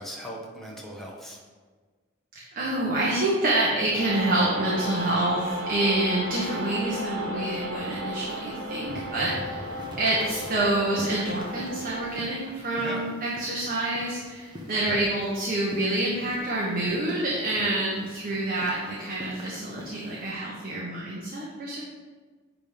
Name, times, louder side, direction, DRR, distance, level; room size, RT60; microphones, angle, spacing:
voice 1, 0.0-1.4 12.8-13.0 14.7-15.0 17.6-17.8, equal, ahead, -3 dB, 1.2 m, -38 dB
voice 2, 2.3-21.8, right 2 dB, 45° right, -5 dB, 1.2 m, -27 dB
sound 1, 4.0-12.1, equal, 65° right, 1.5 m, -34 dB
sound 2, 8.9-20.3, left 1 dB, 20° right, 1.2 m, -44 dB
10.0 x 3.7 x 5.3 m, 1.4 s
head